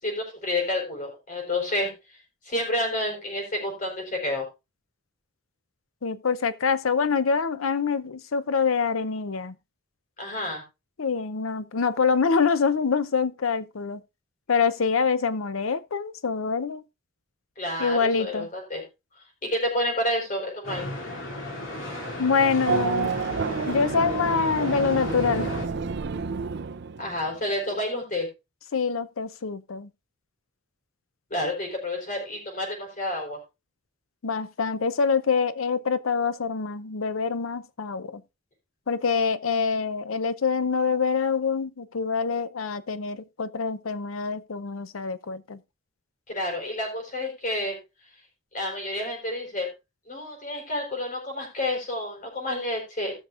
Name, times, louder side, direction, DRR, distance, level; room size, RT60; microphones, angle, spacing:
voice 1, 0.0-1.9 2.4-4.5 10.2-10.6 17.6-18.8 19.4-20.9 27.0-28.3 31.3-33.4 46.3-47.8 48.5-49.7 50.1-53.1, left 1 dB, 40° left, 4.8 m, -29 dB
voice 2, 6.0-9.5 11.0-14.0 14.5-16.8 17.8-18.5 22.2-23.1 23.7-25.5 28.7-29.9 34.2-38.2 38.9-45.6, left 5 dB, 85° left, 0.7 m, -25 dB
sound 1, 20.6-25.7, left 1 dB, 70° left, 2.9 m, -35 dB
Race car auto racing / Accelerating revving vroom, 22.7-27.4, right 5 dB, 55° right, 0.6 m, -29 dB
18.0 x 6.4 x 2.5 m
head